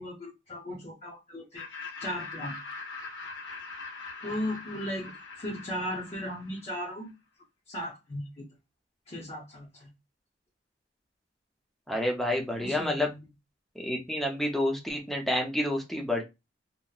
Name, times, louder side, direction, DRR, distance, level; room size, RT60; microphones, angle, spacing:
voice 1, 0.0-1.6 2.0-2.5 4.2-7.1 7.7-8.4 9.1-9.9 12.6-13.2, left 1 dB, 35° left, 0.7 m, -36 dB
Laughter, 1.6-6.8, left 4 dB, 90° left, 0.9 m, -42 dB
voice 2, 11.9-13.1 13.8-16.2, left 1 dB, ahead, 0.6 m, -29 dB
2.8 x 2.1 x 2.3 m
head